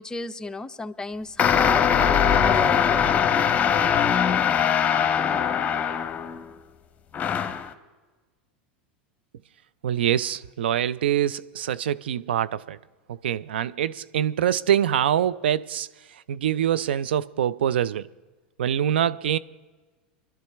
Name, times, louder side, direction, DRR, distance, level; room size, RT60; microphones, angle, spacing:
voice 1, 0.0-3.5, left 3 dB, 15° left, 0.6 m, -34 dB
sound 1, 1.4-6.4 7.1-7.7, left 8 dB, 30° left, 1.1 m, -21 dB
voice 2, 9.8-12.8 13.1-18.1 18.6-19.4, right 10 dB, 85° right, 0.4 m, -25 dB
23.5 x 12.0 x 3.4 m
hypercardioid pair, 100°, 6 cm